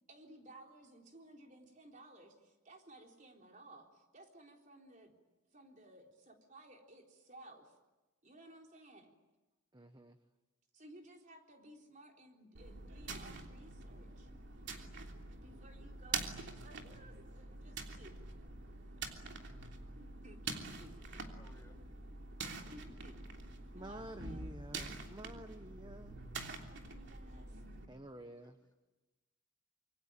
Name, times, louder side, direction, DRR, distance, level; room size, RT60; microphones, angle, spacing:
voice 1, 0.1-5.2 5.5-7.7 8.2-9.1 10.7-14.3 15.4-18.1 19.9-21.3 22.7-23.3 23.7-24.5 26.7-27.7, right 1 dB, 35° right, 2 dB, 3.9 m, -58 dB
voice 2, 9.7-10.2 23.7-26.2 27.9-28.6, right 1 dB, 20° right, 8 dB, 1.1 m, -50 dB
sound 1, 12.5-27.8, right 4 dB, 55° right, 3.2 m, -46 dB
voice 3, 21.2-21.7 28.2-28.7, left 1 dB, 15° left, 2 dB, 2.4 m, -65 dB
26.5 x 24.5 x 9.1 m, 1.1 s
head